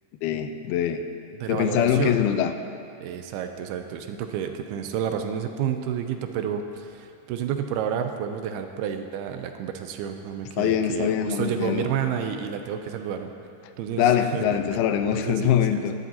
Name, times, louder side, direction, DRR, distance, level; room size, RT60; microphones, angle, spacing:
voice 1, 0.2-1.0 1.5-2.5 10.6-11.9 14.0-15.9, left 9 dB, 85° left, 8 dB, 2.5 m, -23 dB
voice 2, 1.4-2.2 3.0-13.3 13.8-14.8 15.1-15.9, right 8 dB, 85° right, 6 dB, 2.5 m, -30 dB
19.5 x 12.0 x 2.8 m, 2.5 s
omnidirectional pair, 4.5 m